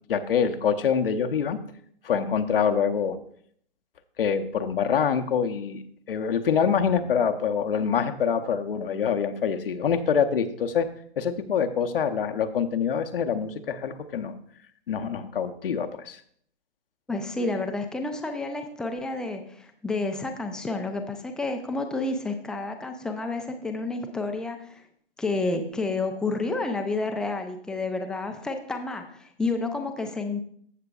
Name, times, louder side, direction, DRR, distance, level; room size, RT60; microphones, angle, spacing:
voice 1, 0.1-1.6 2.0-3.2 4.2-5.8 6.1-10.9 11.2-14.4 14.9-16.2, left 7 dB, 65° left, 7 dB, 0.9 m, -25 dB
voice 2, 17.1-24.8 25.2-30.4, left 3 dB, ahead, 4 dB, 0.5 m, -30 dB
15.0 x 6.6 x 2.4 m, 0.63 s
figure-of-eight pair, 120°, 30 cm